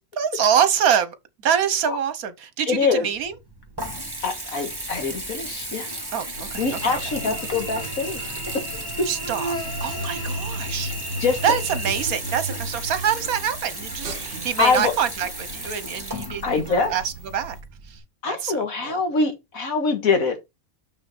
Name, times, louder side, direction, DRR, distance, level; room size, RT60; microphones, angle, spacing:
voice 1, 0.2-1.2 1.4-3.3 6.1-7.3 9.1-9.5 9.8-10.9 11.4-16.4 16.7-17.6 17.9-18.0 18.2-19.0, right 8 dB, 70° right, 1.4 m, -25 dB
voice 2, 2.7-3.1 4.2-6.0 6.6-8.2 8.5-9.1 11.2-11.4 14.6-14.9 16.4-16.9 18.2-20.4, left 4 dB, 65° left, 2.0 m, -24 dB
Water tap faucet / Bathtub (filling or washing) / Trickle dribble, 3.1-18.0, right 1 dB, 15° right, 2.3 m, -35 dB
sound 1, 6.3-17.6, right 1 dB, 50° right, 2.1 m, -36 dB
Cricket / Buzz, 6.5-12.0, right 1 dB, 10° left, 3.0 m, -34 dB
6.4 x 6.3 x 4.2 m
omnidirectional pair, 1.6 m